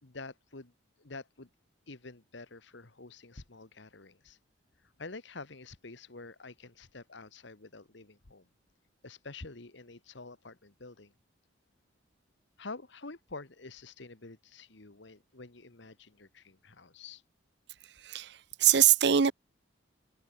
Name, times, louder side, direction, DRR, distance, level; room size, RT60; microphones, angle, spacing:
voice 1, 0.0-0.7 1.0-1.5 1.9-4.4 4.8-8.5 9.0-11.1 12.6-17.2, left 3 dB, 65° left, 1.5 m, -48 dB
voice 2, 18.0-19.3, right 10 dB, 55° right, 0.6 m, -24 dB
head